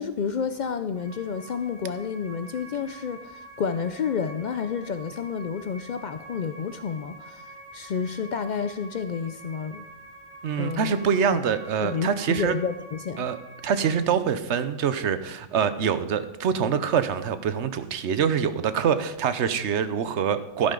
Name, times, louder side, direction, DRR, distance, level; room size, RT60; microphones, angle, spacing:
voice 1, 0.0-9.8 10.6-10.9 11.3-11.4 11.8-13.3, left 6 dB, 65° left, 10 dB, 0.4 m, -30 dB
sound 1, 0.9-14.0, right 1 dB, 35° right, 2.9 m, -46 dB
voice 2, 10.4-12.6 13.2-20.7, right 7 dB, 70° right, 12 dB, 1.0 m, -25 dB
12.0 x 10.5 x 3.8 m, 0.93 s
omnidirectional pair, 1.3 m